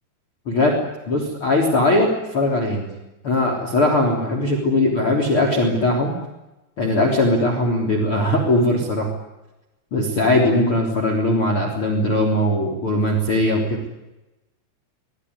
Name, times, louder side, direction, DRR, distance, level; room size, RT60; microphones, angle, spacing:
voice 1, 0.5-0.8 1.1-2.9 3.2-6.1 6.8-9.1 9.9-13.8, left 1 dB, 30° left, 1 dB, 3.8 m, -20 dB
26.5 x 20.5 x 9.7 m, 1.0 s
omnidirectional pair, 5.2 m